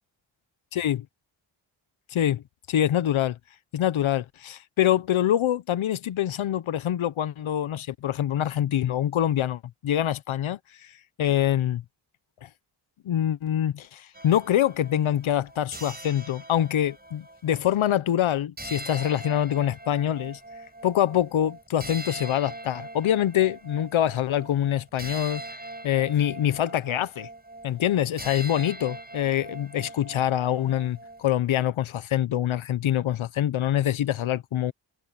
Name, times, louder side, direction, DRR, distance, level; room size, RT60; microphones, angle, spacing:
voice 1, 2.1-2.4 2.7-3.4 3.7-11.8 12.4-12.5 13.0-20.4 20.8-25.4 25.8-27.3 27.6-34.7, left 11 dB, 80° left, 0.9 m, -25 dB
sound 1, 14.1-17.9 18.6-31.3, right 2 dB, 20° right, 5.8 m, -42 dB
cardioid pair, 80°, 47 cm